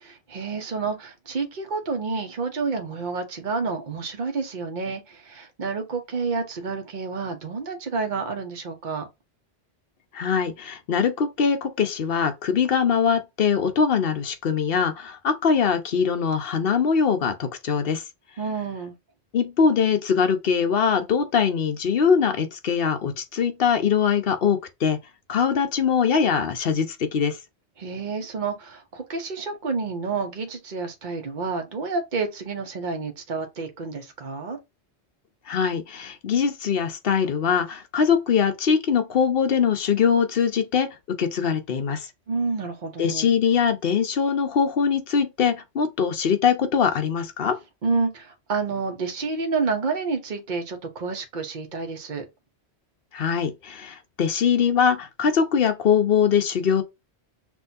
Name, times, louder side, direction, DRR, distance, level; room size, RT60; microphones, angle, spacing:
voice 1, 0.0-9.1 18.4-18.9 27.8-34.6 42.3-43.3 47.8-52.3, right 4 dB, 45° right, 1.0 m, -29 dB
voice 2, 10.1-18.0 19.3-25.0 25.3-27.4 35.5-40.9 41.2-42.0 43.0-47.6 53.1-56.8, left 6 dB, 60° left, 1.0 m, -22 dB
5.9 x 2.6 x 2.7 m
omnidirectional pair, 1.1 m